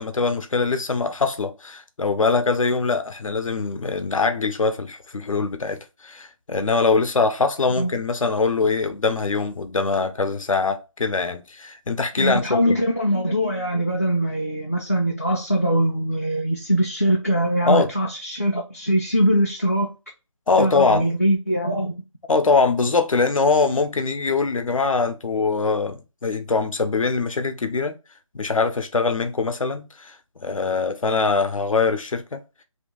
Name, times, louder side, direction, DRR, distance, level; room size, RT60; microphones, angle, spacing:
voice 1, 0.0-12.7 17.6-17.9 20.5-21.1 22.3-27.9 28.3-30.1 30.4-32.4, left 4 dB, 75° left, 0.7 m, -22 dB
voice 2, 12.2-19.9 20.6-21.9, equal, 30° left, 0.3 m, -22 dB
2.7 x 2.6 x 3.6 m
figure-of-eight pair, 175°, 17 cm